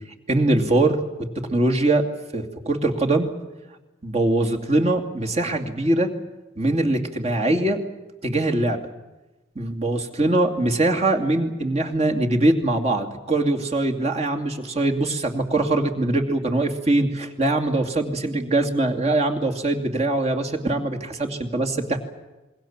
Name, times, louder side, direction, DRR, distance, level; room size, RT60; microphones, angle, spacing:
voice 1, 0.3-2.0 2.3-3.3 4.0-6.1 6.6-7.8 8.2-8.8 9.6-22.0, right 2 dB, 35° right, 3 dB, 2.6 m, -22 dB
27.5 x 22.0 x 7.4 m, 1.1 s
head